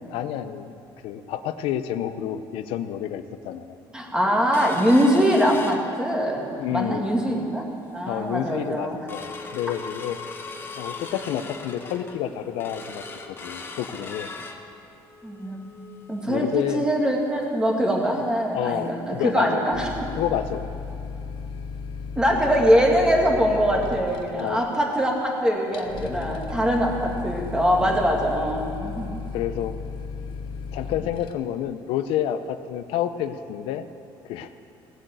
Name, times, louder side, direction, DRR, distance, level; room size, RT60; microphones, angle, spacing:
voice 1, 0.1-0.7 1.0-3.8 6.6-7.1 8.1-10.2 10.8-14.3 16.3-16.9 18.5-19.6 20.2-20.7 24.4-24.7 26.2-26.4 27.8-28.1 29.3-29.8 30.7-33.9 34.2-34.5, left 10 dB, 85° left, 10 dB, 0.6 m, -29 dB
voice 2, 3.9-6.5 6.7-7.6 7.9-9.0 15.2-15.7 16.1-19.9 22.2-29.1, equal, 10° right, 0 dB, 2.1 m, -22 dB
sound 1, 4.5-6.4 6.8-6.9 7.2-7.6 8.1-8.2 8.5-19.0 19.4-19.5 19.8-20.0 20.5-20.6, left 4 dB, 25° left, 1.1 m, -40 dB
sound 2, 19.7-31.3, left 5 dB, 70° left, 1.0 m, -35 dB
18.0 x 8.1 x 7.7 m, 2.7 s
cardioid pair, 140°, 9 cm